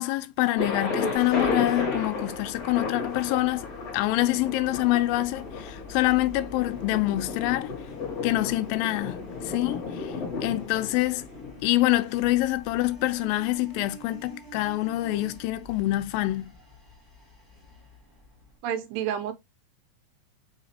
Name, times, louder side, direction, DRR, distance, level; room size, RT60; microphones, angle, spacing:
voice 1, 0.0-3.7 3.9-7.7 8.2-11.3 11.6-16.5, left 17 dB, 90° left, 2.3 m, -26 dB
Thunder, 0.6-12.4, left 4 dB, 50° left, 2.5 m, -33 dB
sound 1, 1.1-18.6, right 1 dB, 10° right, 1.0 m, -48 dB
voice 2, 18.6-19.3, right 9 dB, 85° right, 2.4 m, -29 dB
5.7 x 2.8 x 2.8 m
omnidirectional pair, 4.0 m